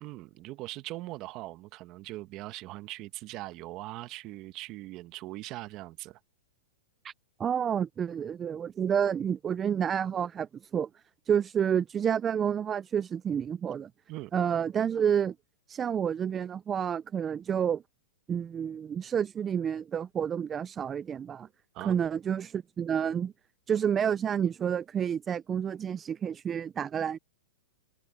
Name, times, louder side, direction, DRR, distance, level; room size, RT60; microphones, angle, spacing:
voice 1, 0.0-6.2 14.1-14.3 21.7-22.0, right 18 dB, 30° right, 1.2 m, -41 dB
voice 2, 7.4-10.9 11.3-13.9 14.3-15.3 15.7-17.8 18.3-21.5 21.8-23.3 23.7-27.2, right 8 dB, 15° right, 0.3 m, -29 dB
hypercardioid pair, 155°, 0 cm